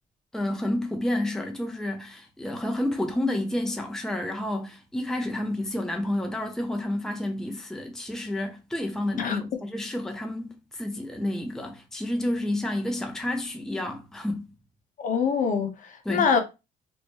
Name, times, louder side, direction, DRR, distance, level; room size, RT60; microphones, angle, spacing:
voice 1, 0.3-14.5 16.0-16.3, left 1 dB, 5° left, 0.6 m, -30 dB
voice 2, 9.2-9.6 15.0-16.4, left 6 dB, 50° left, 0.9 m, -25 dB
2.9 x 2.6 x 3.5 m
cardioid pair, 110°, 17 cm